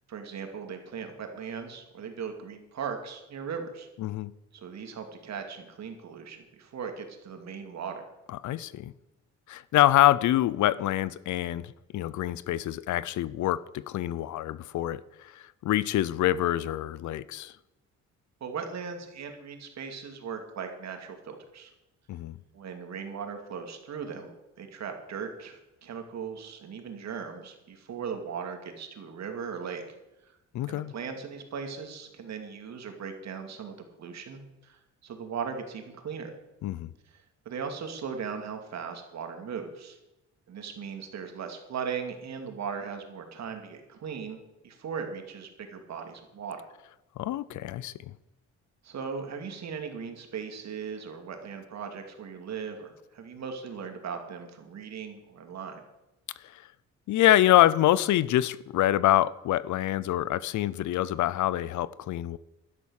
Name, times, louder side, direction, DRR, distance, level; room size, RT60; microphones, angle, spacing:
voice 1, 0.1-3.9 4.5-8.0 18.4-21.7 22.5-29.8 30.2-30.4 30.7-36.3 37.1-40.0 40.5-44.4 44.6-46.6 48.8-55.8, right 6 dB, 60° right, 2.7 m, -38 dB
voice 2, 4.0-4.3 8.4-8.9 9.5-15.0 15.3-17.5 22.1-22.4 30.5-30.9 36.6-36.9 47.2-47.9 57.1-62.4, left 14 dB, 75° left, 0.6 m, -25 dB
12.0 x 10.5 x 6.5 m
cardioid pair, 90°, 30 cm